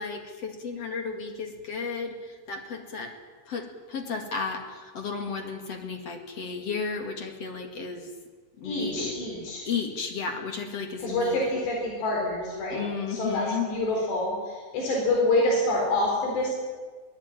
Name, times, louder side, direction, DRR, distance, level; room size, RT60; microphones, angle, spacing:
voice 1, 0.0-3.2 3.5-8.1 8.6-9.1 9.6-11.5 12.7-13.7, left 5 dB, 45° left, 4 dB, 2.6 m, -33 dB
voice 2, 8.6-9.7 11.0-16.5, left 2 dB, 80° left, -1 dB, 6.1 m, -27 dB
22.5 x 18.0 x 9.0 m, 1.5 s
omnidirectional pair, 4.9 m